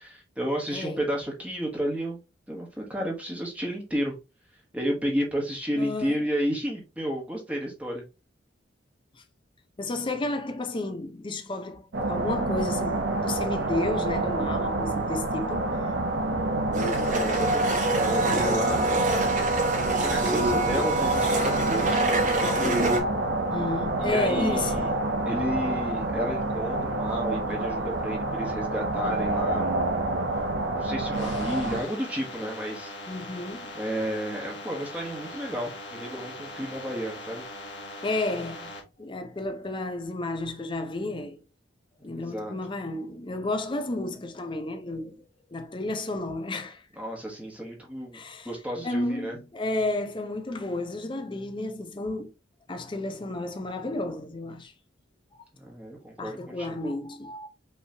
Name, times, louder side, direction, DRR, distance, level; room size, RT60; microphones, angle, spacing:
voice 1, 0.0-2.2 2.5-4.1 4.7-8.0 17.0-19.0 20.0-22.8 24.0-24.9 25.2-29.9 30.7-32.9 33.7-37.4 42.0-42.5 47.0-48.2 48.4-49.4 55.6-56.8, equal, 5° right, 1.2 m, -32 dB
voice 2, 0.7-1.0 5.8-6.2 9.1-9.2 9.8-15.7 23.5-24.9 33.1-33.7 38.0-38.7 39.0-41.4 42.0-46.8 48.1-48.5 48.8-52.3 52.7-54.7 56.2-57.5, left 2 dB, 25° left, 0.6 m, -32 dB
sound 1, 11.9-31.8, right 2 dB, 70° right, 0.9 m, -27 dB
Domestic sounds home sounds, 16.7-23.0, right 2 dB, 40° right, 1.1 m, -26 dB
sound 2, 31.1-38.8, left 2 dB, 65° left, 1.3 m, -41 dB
5.5 x 3.0 x 2.8 m
head